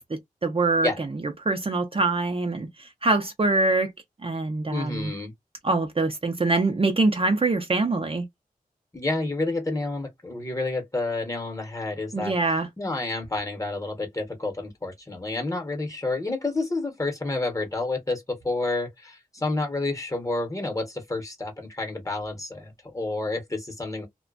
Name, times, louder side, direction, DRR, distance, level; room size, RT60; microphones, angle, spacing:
voice 1, 0.1-0.9 1.4-2.7 3.0-3.9 4.2-5.1 5.6-8.2 12.1-12.7, right 3 dB, 40° right, 0.6 m, -24 dB
voice 2, 4.7-5.3 8.9-24.1, left 2 dB, 20° left, 1.0 m, -29 dB
2.4 x 2.1 x 2.4 m
wide cardioid pair, 70°, 15 cm